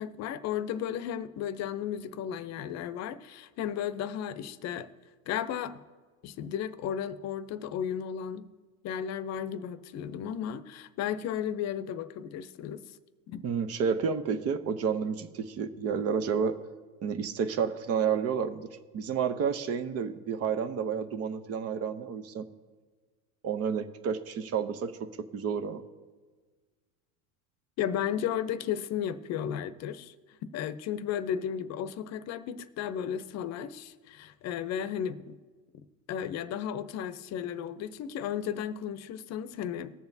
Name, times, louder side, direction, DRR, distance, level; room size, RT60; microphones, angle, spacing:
voice 1, 0.0-4.9 5.3-5.8 6.2-8.5 8.8-12.8 13.3-13.5 27.8-30.1 30.5-35.4 36.1-39.9, left 9 dB, 50° left, 13 dB, 0.7 m, -34 dB
voice 2, 13.4-16.6 17.0-22.5 23.4-25.8, right 6 dB, 45° right, 11 dB, 0.8 m, -30 dB
20.0 x 7.0 x 2.7 m, 1.4 s
supercardioid pair, 110°, 34 cm